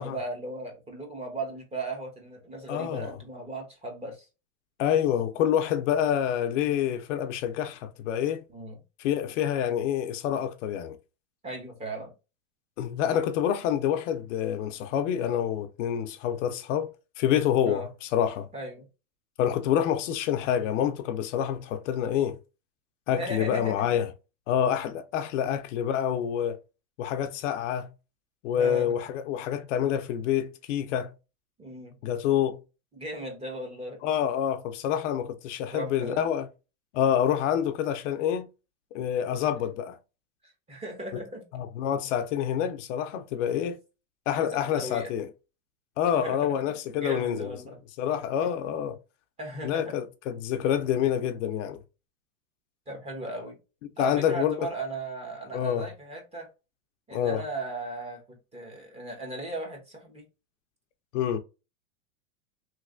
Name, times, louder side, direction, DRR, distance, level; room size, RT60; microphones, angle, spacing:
voice 1, 0.0-4.2 8.5-8.8 11.4-12.1 17.6-17.9 18.5-18.9 23.1-24.0 25.4-25.6 28.5-28.9 31.6-32.0 32.9-34.0 35.7-36.2 40.7-41.4 43.4-43.6 44.3-44.5 44.8-45.1 46.1-47.8 49.4-50.0 52.9-53.6 54.0-56.5 57.1-60.2, right 1 dB, 15° right, 1.0 m, -37 dB
voice 2, 2.7-3.2 4.8-8.4 9.0-11.0 12.8-16.9 17.2-18.5 19.4-22.4 23.1-24.1 24.5-26.6 27.0-27.9 28.4-31.1 32.0-32.6 34.0-36.5 36.9-38.5 38.9-40.0 41.5-43.8 44.3-45.3 46.0-47.6 48.0-49.0 49.6-51.8 54.0-54.7 55.5-55.9 57.1-57.4 61.1-61.4, left 9 dB, 60° left, 0.6 m, -27 dB
3.2 x 2.8 x 2.5 m
supercardioid pair, 140°, 41 cm